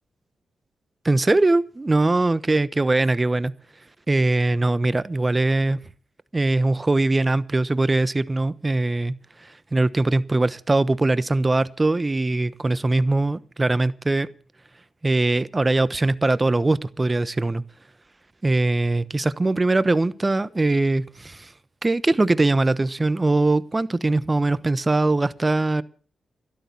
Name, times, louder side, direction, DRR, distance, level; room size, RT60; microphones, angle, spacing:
voice 1, 1.0-3.5 4.1-5.8 6.3-14.3 15.0-17.6 18.4-21.5 21.8-25.8, right 2 dB, 30° right, 16 dB, 1.1 m, -21 dB
13.0 x 12.0 x 7.2 m, 0.43 s
supercardioid pair, 40°, 0 cm